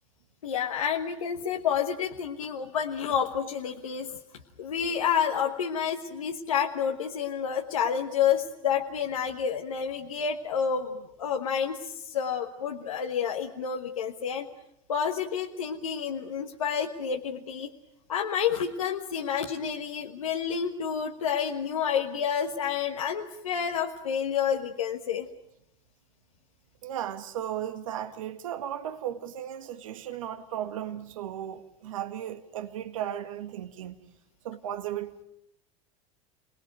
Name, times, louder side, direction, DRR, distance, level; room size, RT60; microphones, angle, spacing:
voice 1, 0.4-4.2 4.6-14.5 14.9-17.7 18.1-25.3, left 7 dB, 90° left, 1.4 m, -29 dB
voice 2, 26.8-34.0 34.4-35.2, right 10 dB, 80° right, 1.8 m, -35 dB
28.0 x 18.5 x 9.1 m
hypercardioid pair, 90°, 17 cm